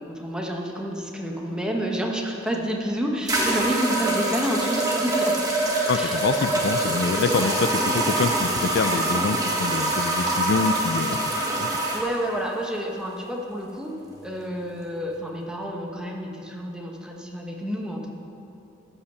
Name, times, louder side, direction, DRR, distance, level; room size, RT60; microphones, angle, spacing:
voice 1, 0.0-5.4 5.9-6.2 7.3-7.6 11.9-13.9 14.2-18.1, equal, 5° right, 0 dB, 1.0 m, -29 dB
sound 1, 2.5-2.6 3.3-12.0, right 2 dB, 20° right, 1.4 m, -25 dB
voice 2, 5.9-7.7 7.9-11.2 11.6-11.7, left 4 dB, 60° left, 10 dB, 0.4 m, -25 dB
13.5 x 5.5 x 6.8 m, 2.8 s
head